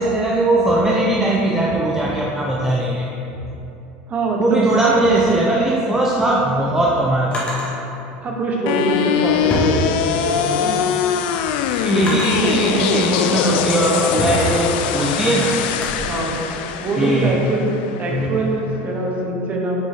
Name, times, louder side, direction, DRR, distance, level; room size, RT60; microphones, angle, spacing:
voice 1, 0.0-3.1 4.4-7.7 11.7-15.6 17.0-17.4 18.1-18.4, right 2 dB, 10° right, -3 dB, 0.5 m, -19 dB
voice 2, 4.1-4.6 8.2-10.8 16.1-16.4 16.8-17.7 18.0-19.9, right 2 dB, 30° right, -1 dB, 1.0 m, -23 dB
Drawer open or close, 6.1-7.8 8.8-10.4 10.9-12.6 13.2-16.0, left 1 dB, 25° left, 1.3 m, -29 dB
sound 1, 8.7-18.7, left 9 dB, 75° left, 0.3 m, -22 dB
7.8 x 4.3 x 3.6 m, 2.9 s
supercardioid pair, 140°, 5 cm